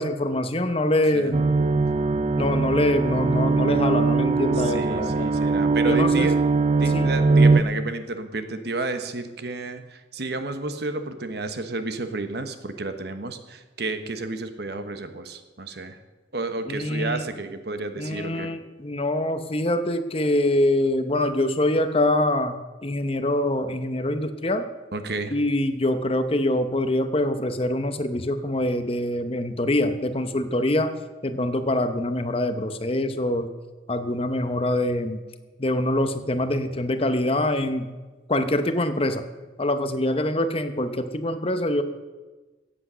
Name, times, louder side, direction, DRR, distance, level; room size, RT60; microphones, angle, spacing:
voice 1, 0.0-1.5 2.4-5.3 5.8-6.3 6.9-7.1 16.7-17.2 18.0-24.7 25.3-30.9 31.2-33.5 33.9-35.2 35.6-37.9 38.3-39.2 39.6-41.8, left 1 dB, 30° left, 9 dB, 0.8 m, -24 dB
sound 1, 1.3-7.6, right 3 dB, 35° right, 0.5 m, -21 dB
voice 2, 4.6-6.4 6.8-16.0 16.3-18.5 24.9-25.3, right 3 dB, 60° right, 9 dB, 1.1 m, -31 dB
16.0 x 8.2 x 6.2 m, 1.3 s
head